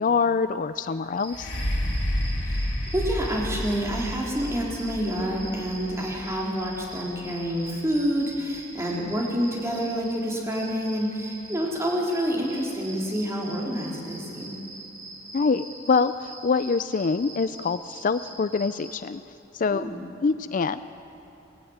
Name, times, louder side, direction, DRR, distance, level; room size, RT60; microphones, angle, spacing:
voice 1, 0.0-1.5 15.3-19.2 19.5-19.9 20.2-20.8, left 4 dB, 45° left, 13 dB, 0.4 m, -25 dB
sound 1, 1.2-18.9, right 3 dB, 45° right, 3.9 m, -43 dB
sound 2, 1.3-9.0 9.7-9.8, left 1 dB, 70° left, 2.8 m, -31 dB
voice 2, 2.4-14.5 19.7-20.0, equal, 15° right, -3 dB, 3.3 m, -28 dB
20.5 x 14.5 x 9.4 m, 2.9 s
head